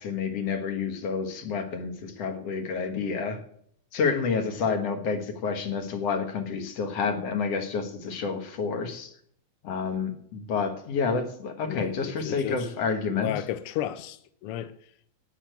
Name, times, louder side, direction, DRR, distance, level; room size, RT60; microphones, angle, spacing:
voice 1, 0.0-3.4 3.9-9.1 9.6-13.3, left 5 dB, 60° left, 2.5 m, -29 dB
voice 2, 11.6-12.9 13.1-14.7, left 11 dB, 85° left, 1.2 m, -34 dB
8.6 x 8.4 x 9.2 m
omnidirectional pair, 3.5 m